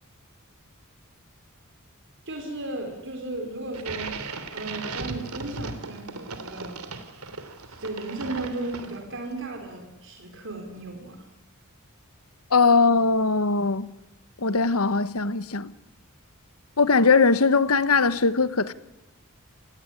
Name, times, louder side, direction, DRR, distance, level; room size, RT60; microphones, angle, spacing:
voice 1, 2.2-4.2 4.5-6.9 7.6-11.2, right 2 dB, 60° right, 4.3 m, -35 dB
sound 1, 3.7-9.2, right 3 dB, 85° right, 3.1 m, -37 dB
voice 2, 12.5-13.9 14.4-15.7 16.8-18.7, left 4 dB, 80° left, 1.3 m, -20 dB
29.0 x 17.5 x 9.9 m
head